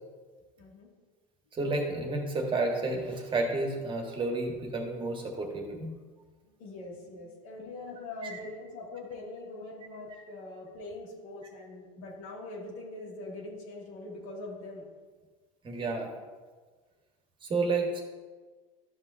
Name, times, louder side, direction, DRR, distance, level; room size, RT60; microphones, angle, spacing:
voice 1, 0.6-0.9 6.5-14.8, left 2 dB, 80° left, -3 dB, 2.4 m, -43 dB
voice 2, 1.5-5.9 8.2-8.4 10.1-10.2 15.6-16.1 17.4-18.0, right 3 dB, 30° right, 2 dB, 1.7 m, -31 dB
13.0 x 5.5 x 2.7 m, 1.4 s
hypercardioid pair, 100°, 18 cm